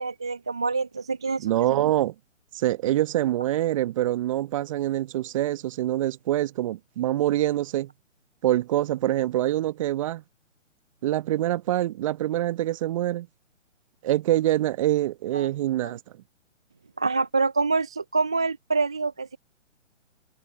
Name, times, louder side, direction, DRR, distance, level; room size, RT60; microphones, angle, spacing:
voice 1, 0.0-1.8 15.3-15.5 17.0-19.4, right 4 dB, 5° right, 0.4 m, -26 dB
voice 2, 1.4-2.1 2.5-7.9 8.4-10.2 11.0-13.3 14.0-16.0, right 14 dB, 25° right, 1.3 m, -25 dB
figure-of-eight pair, 135°, 38 cm